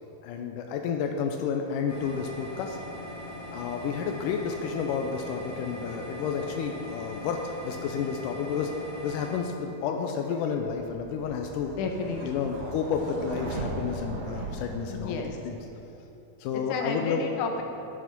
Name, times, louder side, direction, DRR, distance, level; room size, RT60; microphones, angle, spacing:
voice 1, 0.2-2.8 3.5-8.7 9.0-11.7 12.2-15.6 16.4-17.2, left 6 dB, 85° left, 3 dB, 1.9 m, -31 dB
sound 1, 1.9-9.4, left 1 dB, 45° left, 1.6 m, -40 dB
sound 2, 10.7-15.6, right 2 dB, 55° right, 1.9 m, -38 dB
voice 2, 11.7-12.5 14.9-15.4 16.7-17.6, left 4 dB, 70° left, 3 dB, 2.0 m, -32 dB
10.5 x 7.0 x 5.9 m, 3.0 s
omnidirectional pair, 4.3 m